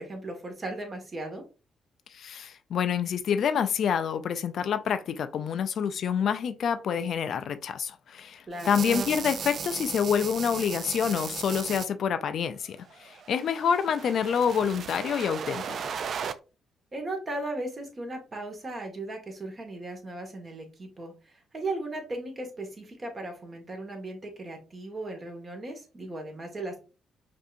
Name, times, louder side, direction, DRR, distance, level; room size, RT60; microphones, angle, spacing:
voice 1, 0.0-1.4 8.5-8.7 16.9-26.8, right 2 dB, 30° right, 1.4 m, -37 dB
voice 2, 2.1-15.6, left 7 dB, 65° left, 0.4 m, -27 dB
sound 1, 8.6-11.9 13.0-16.3, right 6 dB, 55° right, 0.3 m, -36 dB
5.2 x 2.7 x 2.5 m
cardioid pair, 90°, 0 cm